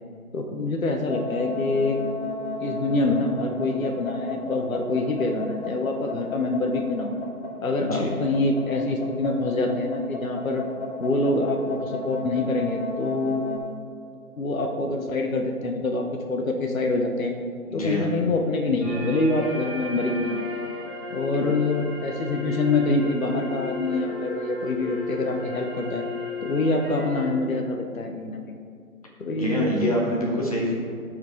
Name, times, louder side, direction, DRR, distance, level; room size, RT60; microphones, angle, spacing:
voice 1, 0.3-2.0 2.6-7.2 7.6-10.6 11.0-13.4 14.4-17.3 17.7-20.5 21.1-26.0 26.4-28.6 29.2-29.8, left 2 dB, 65° left, 3 dB, 0.9 m, -25 dB
sound 1, 1.0-13.6, left 3 dB, 45° left, 1.7 m, -33 dB
voice 2, 7.8-8.1 17.7-18.1 21.3-21.5 29.3-30.7, equal, 25° left, -2 dB, 1.1 m, -26 dB
sound 2, 18.8-27.3, left 4 dB, ahead, 1.4 m, -34 dB
14.0 x 4.8 x 3.6 m, 2.2 s
figure-of-eight pair, 160°, 45 cm